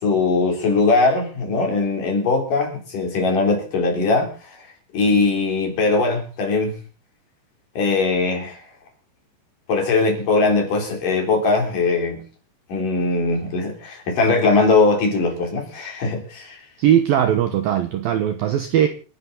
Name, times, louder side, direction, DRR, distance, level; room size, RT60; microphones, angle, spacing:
voice 1, 0.0-4.6 4.9-6.7 7.8-8.6 9.7-12.2 12.7-16.6, left 3 dB, 45° left, 4.6 m, -20 dB
voice 2, 16.8-18.9, right 10 dB, 85° right, 2.0 m, -19 dB
28.5 x 10.0 x 4.0 m
omnidirectional pair, 5.8 m